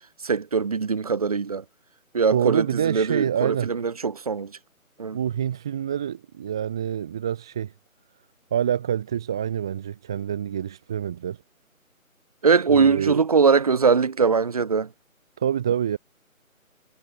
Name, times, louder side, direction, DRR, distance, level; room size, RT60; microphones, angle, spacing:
voice 1, 0.2-1.6 2.1-4.6 5.0-5.2 12.4-14.9, right 5 dB, 25° right, 7.2 m, -21 dB
voice 2, 2.3-3.7 5.1-7.7 8.5-11.4 12.7-13.2 15.4-16.0, right 9 dB, 5° right, 1.8 m, -26 dB
figure-of-eight pair, 175°, 42 cm